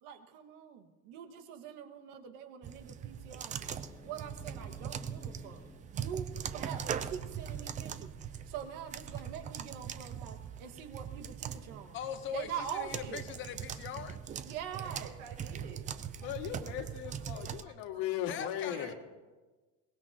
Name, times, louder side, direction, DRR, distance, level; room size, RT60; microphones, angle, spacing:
voice 1, 0.0-3.7 4.0-5.6 5.9-8.1 8.5-12.0 12.3-13.2 14.5-15.1 16.2-16.3 16.6-16.7 17.7-17.8 18.4-18.5, right 8 dB, 60° right, 4 dB, 1.8 m, -44 dB
sound 1, 2.6-17.6, right 8 dB, 20° right, 0.4 m, -41 dB
Growling / Hiss, 3.6-9.3, left 2 dB, 10° left, 1.1 m, -56 dB
voice 2, 11.9-14.2 18.3-18.9, left 8 dB, 35° left, 9 dB, 1.0 m, -41 dB
voice 3, 14.7-15.9 18.7-19.0, right 6 dB, 90° right, 0 dB, 5.7 m, -49 dB
voice 4, 16.2-18.9, left 11 dB, 75° left, 3 dB, 2.1 m, -38 dB
23.0 x 20.5 x 2.9 m, 1.3 s
cardioid pair, 170°, 35 cm